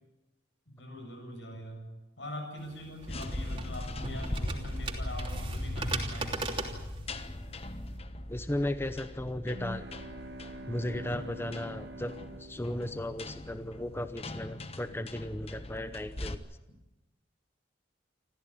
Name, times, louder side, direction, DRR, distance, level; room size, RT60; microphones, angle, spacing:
voice 1, 0.7-1.9 2.2-6.5, left 1 dB, 80° left, 4 dB, 7.6 m, -43 dB
sound 1, 2.6-8.0, right 3 dB, 30° right, 3.1 m, -39 dB
sound 2, 3.0-16.3, left 1 dB, 35° left, 1.2 m, -40 dB
voice 2, 8.3-9.8 10.7-12.1 12.4-16.4, left 1 dB, 15° left, 10 dB, 0.8 m, -35 dB
sound 3, 9.4-13.5, right 1 dB, 80° right, 2.1 m, -45 dB
27.0 x 14.5 x 9.9 m, 1.0 s
head